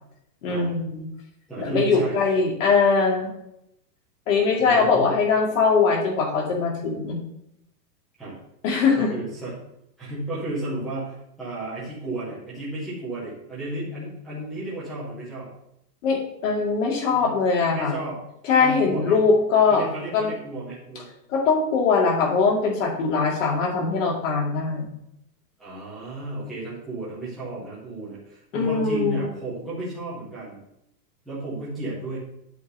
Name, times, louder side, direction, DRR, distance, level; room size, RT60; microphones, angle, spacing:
voice 1, 0.4-1.1 1.6-3.3 4.3-7.2 8.6-9.1 16.0-18.0 18.4-19.8 20.1-20.3 21.3-24.9 28.5-29.3, left 4 dB, 50° left, 0 dB, 2.3 m, -21 dB
voice 2, 1.5-2.2 4.6-5.1 8.2-8.4 9.0-9.5 10.0-15.5 17.1-17.3 17.6-18.2 18.6-19.2 19.7-21.1 25.6-30.6 31.2-32.2, right 2 dB, ahead, -11 dB, 0.5 m, -33 dB
8.3 x 3.8 x 6.4 m, 0.79 s
supercardioid pair, 170°, 49 cm